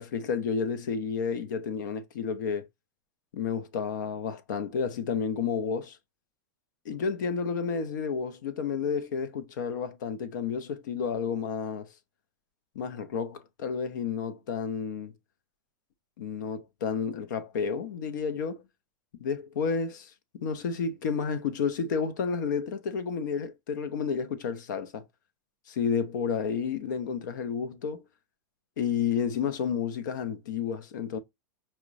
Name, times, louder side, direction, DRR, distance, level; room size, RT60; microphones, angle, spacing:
voice 1, 0.0-2.7 3.3-6.0 6.9-11.9 12.8-15.1 16.2-18.6 19.2-25.0 25.7-28.0 28.8-31.2, left 6 dB, 70° left, 0.7 m, -31 dB
5.7 x 2.1 x 2.5 m
hypercardioid pair, 125°, 10 cm